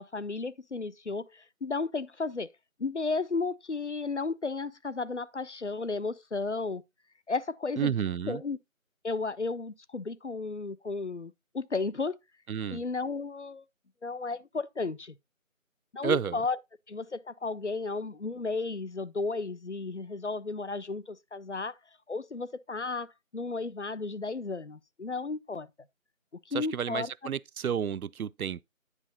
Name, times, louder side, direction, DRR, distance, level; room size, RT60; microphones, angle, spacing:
voice 1, 0.0-2.5 2.8-6.8 7.3-7.9 8.3-8.6 9.0-12.2 12.7-13.6 14.0-15.2 15.9-16.6 16.9-21.8 22.1-25.7 26.5-27.1, left 3 dB, 55° left, 0.5 m, -33 dB
voice 2, 7.8-8.4 12.5-12.8 16.0-16.4 26.5-28.6, right 8 dB, 85° right, 0.5 m, -31 dB
9.9 x 4.7 x 3.9 m
figure-of-eight pair, 175°, 42 cm